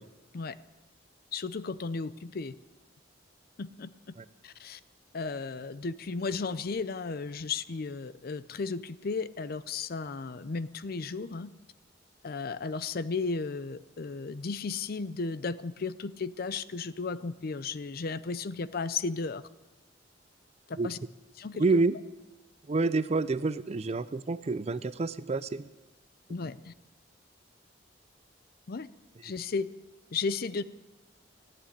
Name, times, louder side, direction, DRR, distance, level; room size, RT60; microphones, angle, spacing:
voice 1, 1.3-2.5 3.6-4.1 4.4-4.8 5.1-11.5 12.2-19.4 20.7-21.0 21.4-21.6 26.3-26.7 28.7-28.9 29.2-29.7 30.1-30.6, left 4 dB, 55° left, 15 dB, 0.5 m, -34 dB
voice 2, 21.6-21.9 22.7-25.7, right 3 dB, 35° right, 15 dB, 0.4 m, -28 dB
14.5 x 8.8 x 9.6 m, 1.1 s
head